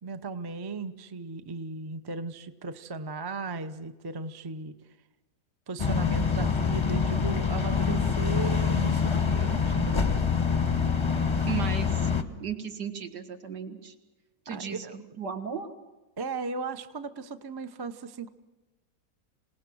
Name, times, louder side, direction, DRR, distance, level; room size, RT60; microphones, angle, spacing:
voice 1, 0.0-4.7 5.7-10.2 14.5-15.0 16.2-18.3, right 4 dB, 30° right, 10 dB, 0.4 m, -36 dB
sound 1, 5.8-12.2, left 6 dB, 25° left, 0.7 m, -25 dB
voice 2, 11.5-12.1 12.4-13.9 14.5-14.9 15.2-15.7, right 7 dB, 75° right, 6 dB, 2.3 m, -35 dB
27.0 x 18.5 x 6.3 m, 1.1 s
omnidirectional pair, 1.9 m